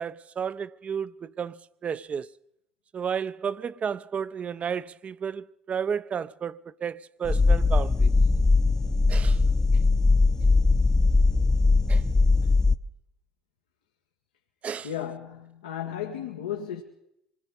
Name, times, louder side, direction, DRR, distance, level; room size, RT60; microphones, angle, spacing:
voice 1, 0.0-2.3 2.9-8.1 9.1-9.4 11.9-12.0 14.6-14.9, right 7 dB, 40° right, 0.8 m, -32 dB
sound 1, 7.2-12.8, left 3 dB, 20° left, 0.9 m, -20 dB
voice 2, 14.8-16.8, left 9 dB, 90° left, 1.8 m, -34 dB
26.0 x 20.5 x 5.5 m
hypercardioid pair, 65°, 3 cm